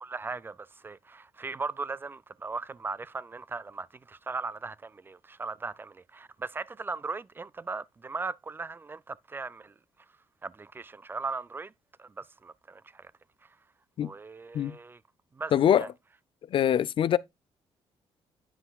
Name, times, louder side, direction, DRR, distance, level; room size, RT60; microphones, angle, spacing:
voice 1, 0.0-9.7 10.4-11.7 12.0-13.1 14.0-15.0 15.3-15.9, right 4 dB, 20° right, 0.3 m, -38 dB
voice 2, 15.5-15.9 16.5-17.2, left 10 dB, 55° left, 0.4 m, -23 dB
9.7 x 5.6 x 2.3 m
cardioid pair, 90°, 11 cm